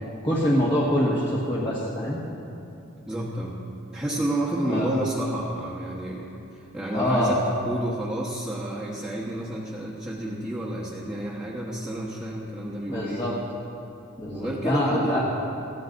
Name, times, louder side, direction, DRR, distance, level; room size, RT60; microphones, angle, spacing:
voice 1, 0.2-2.2 4.7-4.9 6.9-7.4 12.9-13.3 14.2-15.2, equal, 25° left, -7 dB, 1.7 m, -24 dB
voice 2, 3.1-3.6 3.9-13.3 14.3-15.2, right 1 dB, 5° right, -7 dB, 1.2 m, -30 dB
19.5 x 15.0 x 2.6 m, 2.7 s
head